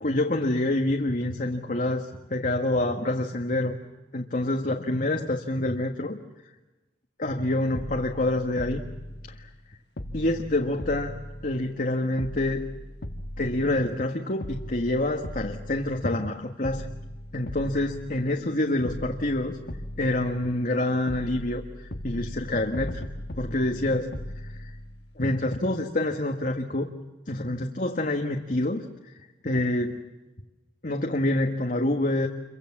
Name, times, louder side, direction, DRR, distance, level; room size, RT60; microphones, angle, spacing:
voice 1, 0.0-3.7 4.1-6.2 7.2-8.8 9.3-9.5 10.1-11.2 11.4-12.7 13.4-16.9 17.3-19.6 20.0-23.0 23.4-24.7 25.2-26.9 27.3-28.9 29.4-30.0 30.8-32.3, left 1 dB, 50° left, 2 dB, 1.6 m, -27 dB
sound 1, 7.3-7.4 7.7-9.7 10.0-11.9 12.2-14.0 14.4-16.3 16.6-18.5 18.8-20.8 21.1-25.2 25.5-25.6, left 1 dB, 65° left, 1.5 m, -38 dB
29.0 x 24.0 x 7.3 m, 1.1 s
head